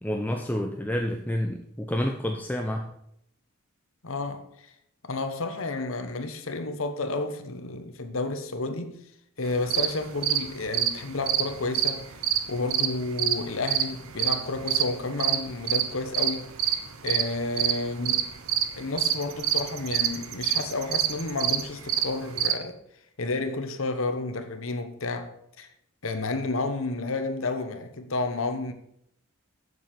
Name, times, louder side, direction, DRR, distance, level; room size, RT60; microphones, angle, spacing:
voice 1, 0.0-2.9, left 1 dB, 10° left, 0.6 m, -29 dB
voice 2, 4.0-4.7 5.0-9.0 9.4-12.1 12.5-16.8 17.0-18.3 18.8-22.8 23.2-25.7 26.0-28.7, left 3 dB, 65° left, 1.1 m, -31 dB
sound 1, 9.5-22.6, right 10 dB, 75° right, 0.9 m, -27 dB
8.1 x 7.4 x 6.7 m
head